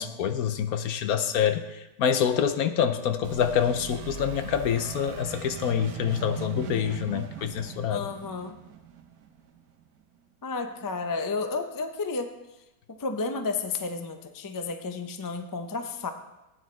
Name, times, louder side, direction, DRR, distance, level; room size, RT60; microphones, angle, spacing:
voice 1, 0.0-1.6 2.0-8.1, left 8 dB, 75° left, 9 dB, 1.2 m, -26 dB
sound 1, 3.2-9.8, right 8 dB, 80° right, 1.3 m, -39 dB
voice 2, 7.9-8.6 10.4-12.3 12.9-16.1, left 4 dB, 30° left, 6 dB, 0.3 m, -32 dB
15.5 x 9.4 x 3.2 m, 0.99 s
omnidirectional pair, 1.6 m